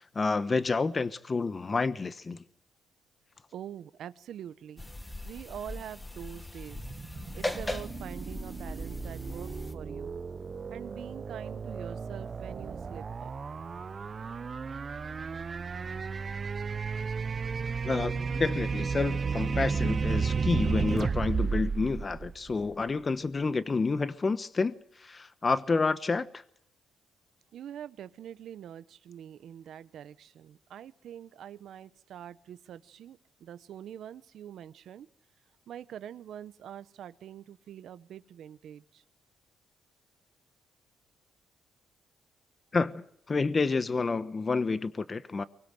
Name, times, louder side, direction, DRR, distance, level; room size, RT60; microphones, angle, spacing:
voice 1, 0.0-2.4 17.8-26.4 42.7-45.4, left 4 dB, 30° left, 1.1 m, -29 dB
voice 2, 3.5-4.9 5.2-6.9 7.3-10.2 10.7-13.3 27.5-35.1 35.7-39.0, right 10 dB, 70° right, 1.0 m, -44 dB
sound 1, 4.8-9.7, left 1 dB, 15° left, 1.6 m, -39 dB
sound 2, 6.7-22.9, right 5 dB, 40° right, 0.8 m, -33 dB
24.0 x 21.0 x 7.9 m
cardioid pair, 90°, 0 cm